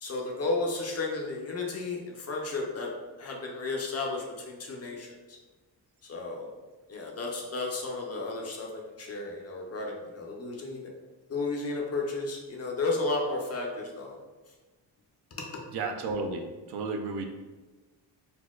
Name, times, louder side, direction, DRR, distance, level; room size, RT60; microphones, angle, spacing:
voice 1, 0.0-2.9 3.2-5.1 6.1-6.5 6.9-10.9 11.3-14.2, left 3 dB, 35° left, -1 dB, 0.5 m, -33 dB
voice 2, 15.7-17.3, right 3 dB, 65° right, 4 dB, 0.5 m, -33 dB
4.1 x 2.2 x 2.2 m, 1.2 s
cardioid pair, 120°, 43 cm